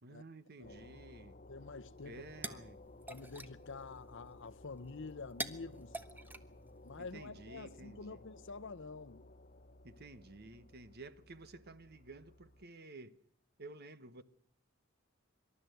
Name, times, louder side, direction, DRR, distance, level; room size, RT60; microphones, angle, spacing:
voice 1, 0.0-1.4 2.0-2.8 7.0-8.2 9.8-13.2 13.6-14.2, right 2 dB, 50° right, 1.2 m, -52 dB
sound 1, 0.6-12.7, left 2 dB, 40° left, 1.0 m, -57 dB
voice 2, 1.5-2.6 3.1-6.0 6.8-9.3, left 4 dB, 60° left, 0.8 m, -48 dB
sound 2, 2.0-7.3, right 2 dB, 10° right, 1.1 m, -48 dB
25.5 x 12.5 x 9.3 m
head